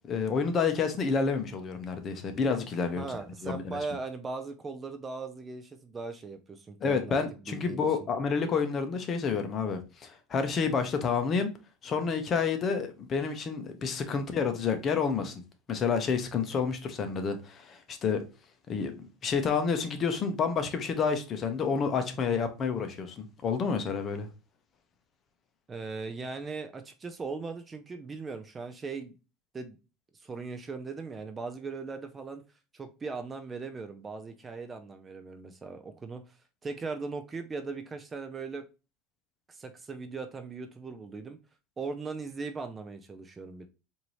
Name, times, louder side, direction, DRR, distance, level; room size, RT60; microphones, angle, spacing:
voice 1, 0.1-3.0 3.4-3.8 6.8-11.5 11.8-15.4 15.7-18.2 18.7-24.3, left 5 dB, 35° left, 0.8 m, -29 dB
voice 2, 3.0-7.9 25.7-29.1 29.5-29.8 30.1-32.4 32.7-36.4 36.6-38.6 39.5-41.4 41.8-43.7, right 4 dB, 20° right, 0.5 m, -39 dB
4.5 x 2.7 x 3.0 m
supercardioid pair, 130°, 0 cm